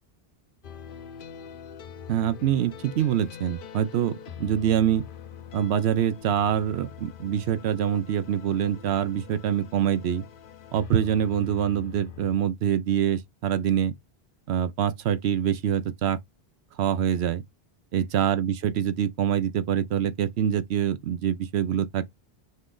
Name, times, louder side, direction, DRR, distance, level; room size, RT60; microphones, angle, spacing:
sound 1, 0.6-12.4, left 8 dB, 60° left, 0.8 m, -44 dB
voice 1, 2.1-5.0 5.5-10.2 10.7-13.9 14.5-16.2 16.8-17.4 17.9-22.1, right 9 dB, 85° right, 0.9 m, -25 dB
5.2 x 2.5 x 3.7 m
omnidirectional pair, 1.1 m